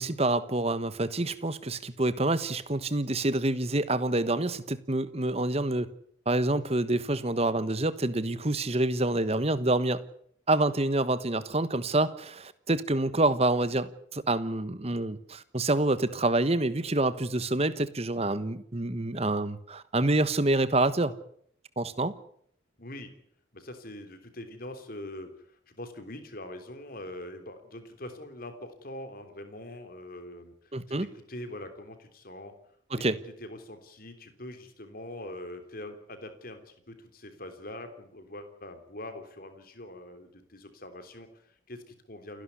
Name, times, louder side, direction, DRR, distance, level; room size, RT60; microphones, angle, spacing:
voice 1, 0.0-5.9 6.3-10.0 10.5-21.1 21.8-22.1 30.7-31.1 32.9-33.2, right 2 dB, 30° right, 14 dB, 1.2 m, -27 dB
voice 2, 22.8-23.1 23.5-32.5 33.4-42.4, left 1 dB, 50° left, 8 dB, 3.4 m, -43 dB
29.0 x 11.5 x 9.7 m, 0.68 s
head